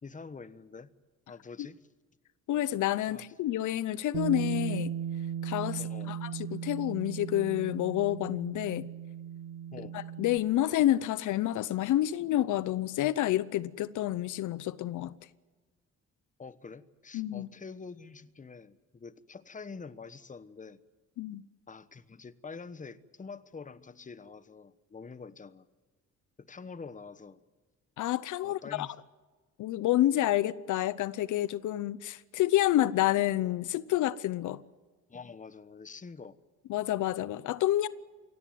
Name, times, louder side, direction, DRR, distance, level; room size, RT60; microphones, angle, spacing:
voice 1, 0.0-0.9 1.3-1.8 3.1-3.2 5.8-6.2 9.7-10.0 16.4-20.8 21.7-25.7 26.4-27.4 28.4-28.9 35.1-36.4, left 4 dB, 25° left, 1.2 m, -46 dB
voice 2, 2.5-4.9 5.4-8.9 9.9-15.2 17.1-17.5 21.2-21.4 28.0-28.9 29.6-34.6 36.7-37.9, left 13 dB, 80° left, 0.8 m, -29 dB
Bass guitar, 4.1-10.4, right 9 dB, 85° right, 1.1 m, -37 dB
23.5 x 17.5 x 9.3 m
cardioid pair, 90°, 30 cm